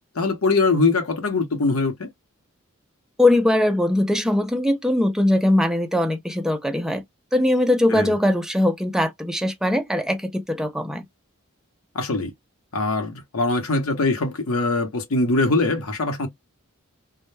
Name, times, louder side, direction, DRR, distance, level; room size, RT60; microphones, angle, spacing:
voice 1, 0.2-2.1 7.9-8.1 11.9-12.3 12.7-16.3, left 3 dB, 85° left, 0.8 m, -22 dB
voice 2, 3.2-7.0 7.3-11.0, left 1 dB, ahead, 0.3 m, -21 dB
2.1 x 2.1 x 3.1 m
head